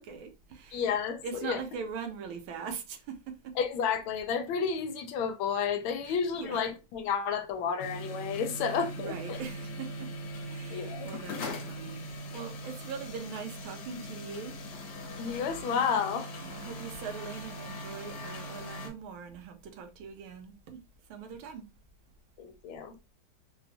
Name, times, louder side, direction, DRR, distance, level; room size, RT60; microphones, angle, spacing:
voice 1, 0.0-0.9 1.2-3.5 6.0-6.6 8.6-14.6 16.4-21.7, right 6 dB, 75° right, 1.4 m, -42 dB
voice 2, 0.7-1.6 3.6-9.4 10.7-11.1 15.2-16.3 22.4-22.9, left 6 dB, 80° left, 1.4 m, -31 dB
sound 1, 7.8-18.9, equal, 60° left, 1.3 m, -40 dB
3.9 x 2.3 x 2.6 m
omnidirectional pair, 2.3 m